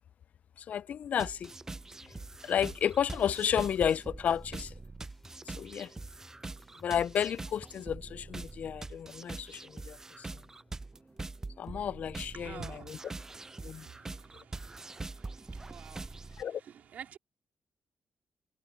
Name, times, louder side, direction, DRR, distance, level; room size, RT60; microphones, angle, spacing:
voice 1, 0.6-1.5 2.4-4.7 5.5-5.9 6.8-10.3 11.6-13.0 13.6-13.9 16.4-16.6, left 8 dB, 60° left, 0.3 m, -32 dB
sound 1, 1.2-16.4, right 3 dB, 20° right, 0.4 m, -44 dB
sound 2, 1.5-7.8, left 1 dB, 10° left, 6.8 m, -59 dB
voice 2, 12.3-12.9 15.7-16.1 16.6-17.2, right 8 dB, 75° right, 3.6 m, -46 dB
wide cardioid pair, 135°, 3 cm